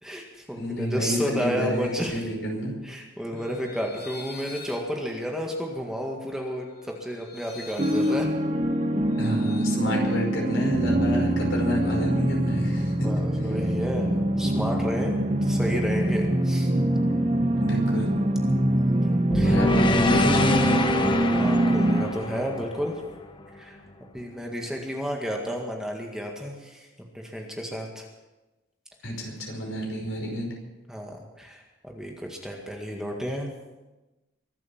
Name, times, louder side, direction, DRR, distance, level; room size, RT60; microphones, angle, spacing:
voice 1, 0.0-2.3 2.8-8.3 13.0-16.7 18.7-19.6 21.3-22.9 23.5-23.8 24.1-26.9 27.1-28.1 30.9-33.5, equal, 5° right, 0 dB, 1.9 m, -32 dB
voice 2, 0.6-2.7 9.2-13.1 17.6-18.1 19.4-20.7 29.0-30.5, equal, 85° left, 0 dB, 5.4 m, -29 dB
sound 1, 3.3-9.7, left 4 dB, 50° left, 4.0 m, -46 dB
sound 2, 7.8-22.1, right 1 dB, 35° right, 1.3 m, -24 dB
sound 3, 19.3-23.6, left 1 dB, 25° left, 1.0 m, -25 dB
23.5 x 8.3 x 7.3 m, 1.1 s
head